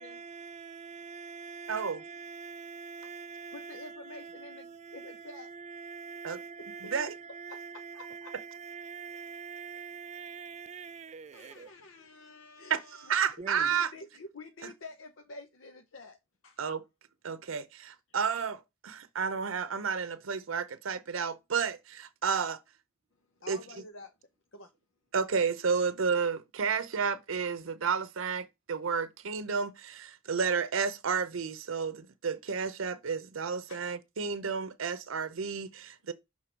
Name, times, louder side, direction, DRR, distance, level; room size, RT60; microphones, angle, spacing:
voice 1, 0.0-11.7 13.4-13.7, right 5 dB, 35° right, 0.3 m, -44 dB
voice 2, 1.7-2.0 6.2-6.4 6.8-7.1 12.7-12.8 13.1-13.9 14.6-14.7 16.6-16.8 17.2-22.6 23.5-23.6 25.1-36.1, right 6 dB, 90° right, 0.6 m, -31 dB
voice 3, 3.5-5.5 6.6-6.7 7.5-7.6 7.9-8.3 11.3-16.2 16.4-16.6 23.4-24.1 24.5-24.7 33.7-33.9, left 3 dB, 80° left, 0.8 m, -48 dB
6.0 x 3.6 x 5.0 m
head